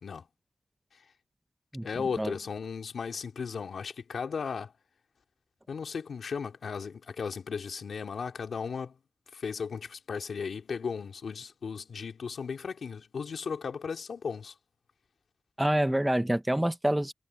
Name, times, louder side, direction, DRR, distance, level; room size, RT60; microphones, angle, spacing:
voice 1, 1.8-4.7 5.7-9.0 9.3-14.5, left 6 dB, 85° left, 2.6 m, -36 dB
voice 2, 15.6-17.1, right 1 dB, 10° right, 1.0 m, -26 dB
wide cardioid pair, 135°, 0 cm